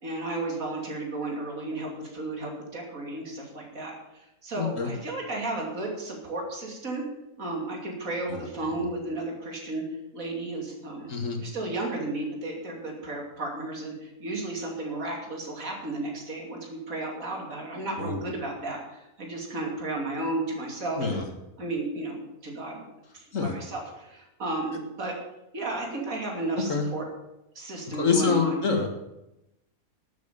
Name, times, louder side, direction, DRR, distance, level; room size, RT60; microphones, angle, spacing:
voice 1, 0.0-7.0 7.4-9.8 10.1-11.1 11.4-21.2 21.6-22.8 23.1-25.2 25.5-27.0 27.5-28.6, right 2 dB, 60° right, 0 dB, 3.2 m, -33 dB
voice 2, 4.6-4.9 8.3-8.5 11.1-11.4 18.0-18.2 21.0-21.3 23.3-23.5 26.7-26.9 28.0-28.9, left 5 dB, 55° left, 4 dB, 2.0 m, -26 dB
12.0 x 7.7 x 6.9 m, 0.89 s
omnidirectional pair, 1.6 m